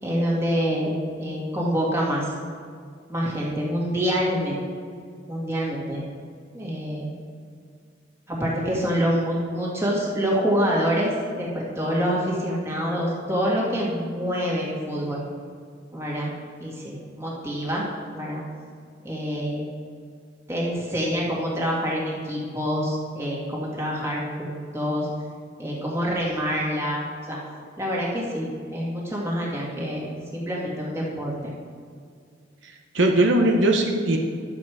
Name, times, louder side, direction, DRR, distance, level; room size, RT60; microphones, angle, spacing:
voice 1, 0.0-2.3 3.1-4.6 5.3-6.0 6.5-7.1 8.3-15.2 15.9-16.3 16.6-17.9 18.1-18.4 19.0-19.7 20.5-25.1 25.6-27.4 27.8-31.3, equal, 15° right, -4 dB, 2.1 m, -26 dB
voice 2, 32.6-34.2, right 1 dB, 80° right, 2 dB, 0.9 m, -20 dB
11.0 x 7.5 x 4.8 m, 2.1 s
head